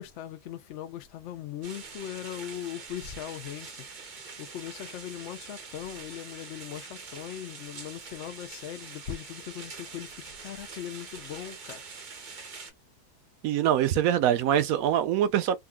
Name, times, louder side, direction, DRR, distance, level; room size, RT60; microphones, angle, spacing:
voice 1, 0.0-11.8, left 11 dB, 65° left, 0.8 m, -40 dB
sound 1, 1.6-12.7, right 5 dB, 45° right, 0.7 m, -44 dB
voice 2, 13.4-15.6, right 10 dB, 70° right, 1.0 m, -24 dB
3.6 x 2.3 x 2.2 m
omnidirectional pair, 1.6 m